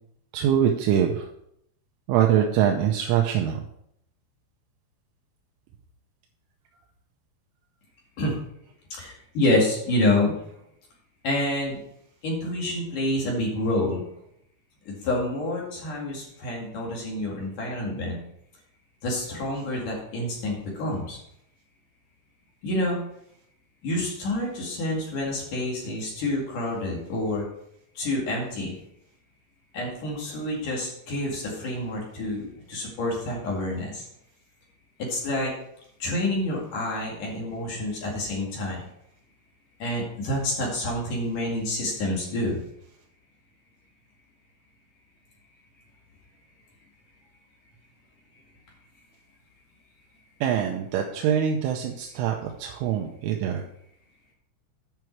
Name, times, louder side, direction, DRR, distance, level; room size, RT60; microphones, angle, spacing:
voice 1, 0.3-1.3 2.1-3.6 50.4-53.6, right 9 dB, 80° right, 2 dB, 3.1 m, -24 dB
voice 2, 8.9-10.3 11.2-11.8 12.2-14.0 14.9-18.2 19.0-21.2 22.6-23.0 23.8-27.5 27.9-28.8 29.7-34.1 35.0-35.5 36.0-38.8 39.8-42.6, left 1 dB, 50° left, -2 dB, 3.1 m, -28 dB
11.0 x 5.9 x 4.6 m, 0.74 s
omnidirectional pair, 5.8 m